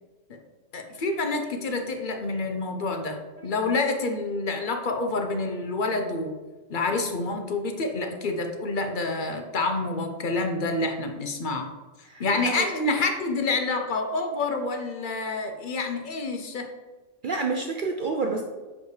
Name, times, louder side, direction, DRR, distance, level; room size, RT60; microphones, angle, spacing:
voice 1, 0.7-6.4 6.7-11.7 12.2-16.7, left 3 dB, 50° left, 5 dB, 0.7 m, -28 dB
voice 2, 12.0-12.7 17.2-18.4, right 4 dB, 60° right, 3 dB, 0.5 m, -29 dB
6.9 x 4.8 x 3.2 m, 1.3 s
omnidirectional pair, 1.4 m